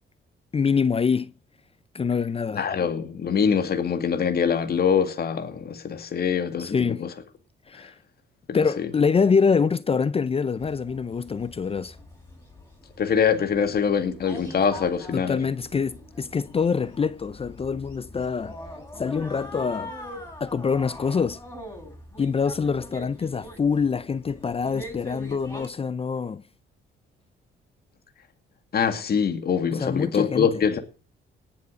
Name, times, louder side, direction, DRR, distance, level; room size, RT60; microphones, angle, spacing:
voice 1, 0.5-1.3 1.9-2.7 6.6-7.0 7.7-7.9 8.5-12.0 15.1-18.6 19.0-19.9 20.4-21.4 22.2-26.4 29.7-30.6, left 5 dB, 30° left, 0.6 m, -25 dB
voice 2, 2.5-7.1 8.5-8.6 13.0-15.4 28.7-30.8, left 7 dB, 50° left, 2.2 m, -24 dB
sound 1, 10.6-25.7, left 1 dB, 10° left, 5.8 m, -43 dB
19.0 x 7.2 x 6.2 m
cardioid pair, 90°, 20 cm